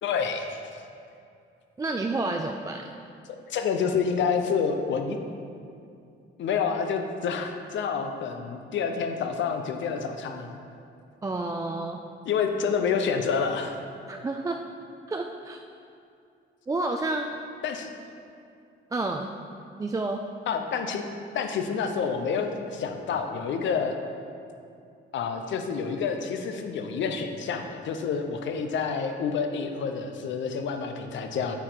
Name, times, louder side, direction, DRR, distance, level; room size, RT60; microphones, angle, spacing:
voice 1, 0.0-0.8 3.5-5.2 6.4-10.6 12.3-13.8 17.6-17.9 20.5-21.0 21.3-24.0 25.1-31.5, left 6 dB, 70° left, 6 dB, 0.7 m, -28 dB
voice 2, 1.8-2.9 11.2-12.0 14.1-14.6 15.1-15.6 16.7-17.3 18.9-19.3 19.8-20.2, right 2 dB, 15° right, 3 dB, 0.3 m, -29 dB
8.6 x 4.8 x 3.9 m, 2.5 s
cardioid pair, 90°, 20 cm